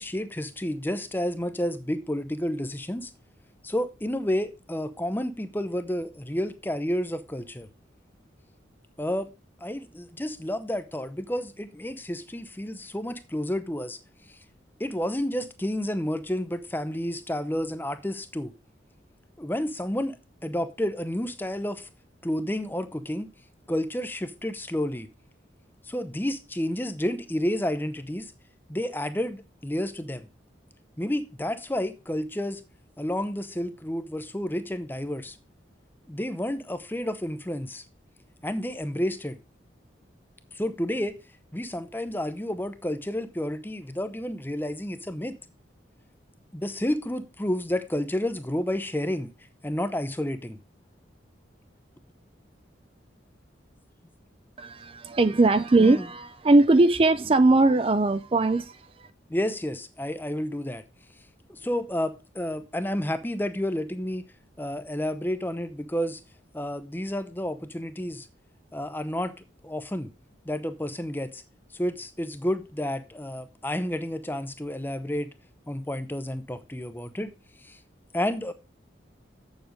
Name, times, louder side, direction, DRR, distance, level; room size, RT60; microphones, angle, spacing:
voice 1, 0.0-3.1 3.6-7.7 9.0-9.3 9.6-14.0 14.8-18.5 19.4-20.2 20.4-21.9 22.2-23.3 23.7-25.1 25.9-28.3 28.7-30.3 31.0-32.6 33.0-35.4 36.1-37.8 38.4-39.4 40.5-41.2 41.5-45.3 46.5-49.3 49.6-50.6 55.8-56.0 59.3-60.8 61.5-64.2 64.6-66.2 66.5-68.3 68.7-69.3 69.6-70.1 70.4-71.4 71.7-75.3 75.7-77.3 77.6-77.8 78.1-78.5, left 1 dB, 10° left, 0.7 m, -30 dB
voice 2, 54.6-59.1, right 2 dB, 30° right, 0.4 m, -20 dB
7.8 x 7.2 x 5.1 m
head